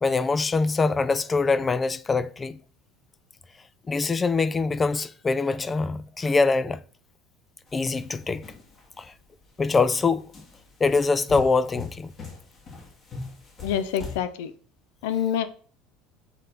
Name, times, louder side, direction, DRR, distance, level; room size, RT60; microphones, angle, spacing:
voice 1, 0.0-2.6 3.9-6.8 7.7-8.4 9.0-9.1 9.6-10.3 10.8-12.1, left 4 dB, 25° left, 0.4 m, -24 dB
sound 1, 7.7-9.1 9.6-9.8 10.3-14.2, left 5 dB, 40° left, 2.1 m, -40 dB
voice 2, 13.6-14.5 15.0-15.5, left 9 dB, 75° left, 0.6 m, -26 dB
7.2 x 4.0 x 3.5 m
hypercardioid pair, 85°, 0 cm